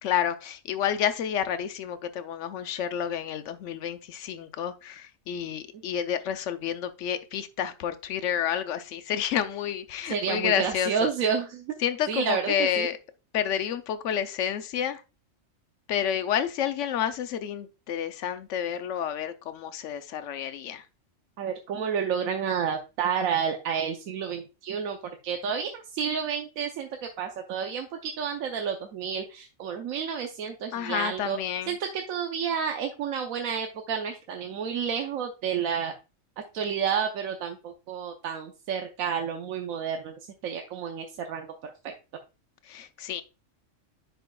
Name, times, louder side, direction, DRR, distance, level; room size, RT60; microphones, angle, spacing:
voice 1, 0.0-11.1 11.8-13.0 13.3-15.0 15.9-20.9 30.7-31.8 42.6-43.2, left 9 dB, 70° left, 1.0 m, -30 dB
voice 2, 10.1-11.6 12.1-12.9 21.4-25.0 25.2-26.9 27.2-31.4 31.7-35.9 36.5-40.1 40.4-41.9, right 7 dB, 85° right, 1.1 m, -30 dB
10.0 x 5.4 x 2.3 m
omnidirectional pair, 1.4 m